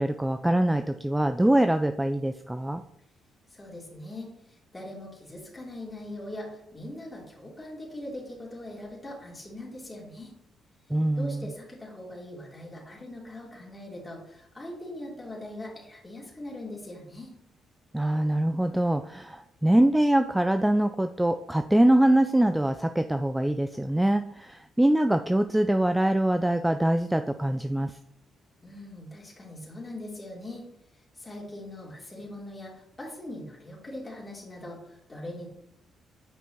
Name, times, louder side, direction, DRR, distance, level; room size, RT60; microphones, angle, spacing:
voice 1, 0.0-2.8 10.9-11.5 17.9-27.9, right 1 dB, 5° right, 8 dB, 0.3 m, -24 dB
voice 2, 3.5-4.3 4.7-10.3 11.1-17.3 28.6-30.7 31.2-35.5, left 1 dB, 20° left, -4 dB, 3.0 m, -41 dB
8.6 x 5.3 x 3.0 m, 0.75 s
cardioid pair, 90°, 0 cm